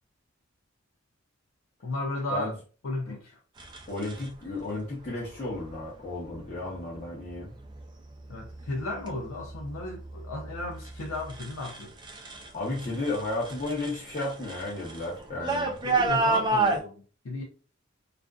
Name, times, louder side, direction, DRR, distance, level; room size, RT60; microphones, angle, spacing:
voice 1, 1.8-2.5 2.8-3.4 8.3-11.9 15.8-17.4, left 2 dB, 75° left, 0.5 m, -34 dB
sound 1, 3.6-4.3 5.4-5.8 6.3-6.8 7.3-7.8 8.2-12.5 12.7-16.8, right 3 dB, 20° right, 0.3 m, -31 dB
voice 2, 3.9-7.5 12.5-15.8, left 2 dB, 35° left, 0.7 m, -33 dB
2.5 x 2.4 x 2.3 m
head